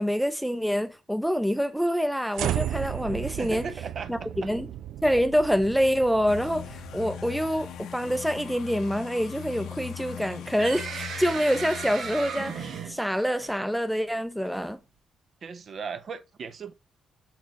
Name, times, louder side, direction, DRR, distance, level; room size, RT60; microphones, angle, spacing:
voice 1, 0.0-3.7 4.1-4.7 5.0-14.8, equal, ahead, 0.5 m, -26 dB
Annulet of absorption, 2.3-8.7, right 11 dB, 90° right, 0.3 m, -35 dB
voice 2, 3.3-4.5 15.4-16.7, right 5 dB, 50° right, 0.8 m, -37 dB
sound 1, 6.3-12.7, left 8 dB, 80° left, 0.7 m, -40 dB
sound 2, 10.1-13.7, right 6 dB, 70° right, 1.4 m, -36 dB
6.3 x 4.5 x 4.0 m
cardioid pair, 110°, 0 cm